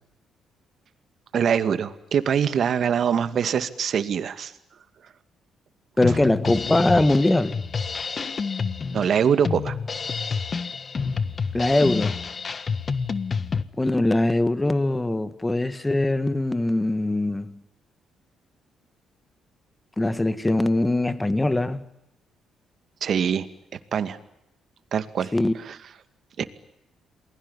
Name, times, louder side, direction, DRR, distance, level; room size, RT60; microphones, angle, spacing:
voice 1, 1.3-4.5 8.9-9.8 23.0-23.5 23.9-24.2 24.9-25.8 26.4-26.5, right 8 dB, 60° right, 2.2 m, -23 dB
Drum kit, 6.0-13.6, left 5 dB, 40° left, 1.5 m, -28 dB
voice 2, 6.0-7.6 11.5-12.2 13.8-17.6 20.0-21.8 25.3-25.5, left 2 dB, 15° left, 2.1 m, -22 dB
28.0 x 21.0 x 9.9 m
cardioid pair, 90°, 0 cm